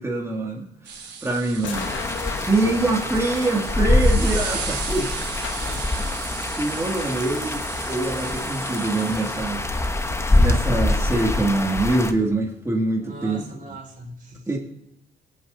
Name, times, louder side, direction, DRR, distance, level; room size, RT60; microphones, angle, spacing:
voice 1, 0.0-1.9 2.4-5.4 6.0-6.2 6.5-9.6 10.3-13.4 14.5-14.6, right 2 dB, 15° right, -1 dB, 2.3 m, -24 dB
sound 1, 0.9-10.7, right 6 dB, 60° right, 3.1 m, -36 dB
sound 2, 1.6-10.3, left 7 dB, 70° left, 1.2 m, -41 dB
sound 3, 1.7-12.1, left 2 dB, 15° left, 0.9 m, -24 dB
voice 2, 13.0-14.5, right 2 dB, 45° right, 0 dB, 4.6 m, -41 dB
20.0 x 8.8 x 2.7 m, 0.82 s
cardioid pair, 90°, 20 cm